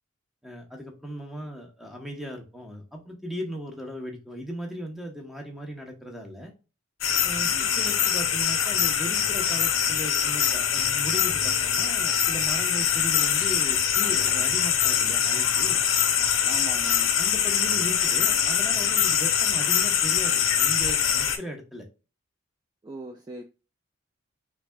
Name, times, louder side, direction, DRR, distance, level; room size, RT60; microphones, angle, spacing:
voice 1, 0.4-6.5 7.2-15.8 17.2-21.8, equal, ahead, 0.7 m, -37 dB
sound 1, 7.0-21.4, left 8 dB, 75° left, 0.6 m, -23 dB
voice 2, 7.5-7.9 16.4-17.1 22.8-23.4, right 2 dB, 20° right, 0.3 m, -40 dB
3.4 x 3.2 x 2.3 m
head